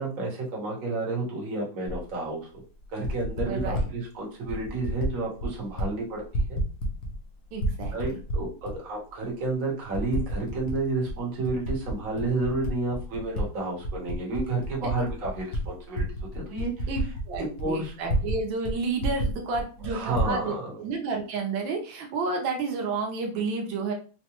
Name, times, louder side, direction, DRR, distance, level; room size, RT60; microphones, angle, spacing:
voice 1, 0.0-2.6 2.9-6.6 7.9-16.0 16.3-16.9 17.4-17.9 19.8-20.7, right 2 dB, 50° right, -2 dB, 1.3 m, -31 dB
Typing, 1.9-2.0 2.8-3.9 4.5-5.1 5.4-5.9 6.2-7.2 7.5-8.7 9.3-9.4 9.9-10.8 11.1-13.4 13.8-18.4 18.6-18.7 19.0-20.3, equal, 60° left, 1.1 m, -30 dB
voice 2, 3.4-3.9 7.5-8.2 16.9-23.9, right 4 dB, 85° right, 2 dB, 1.4 m, -31 dB
4.5 x 2.1 x 2.9 m, 0.38 s
omnidirectional pair, 2.0 m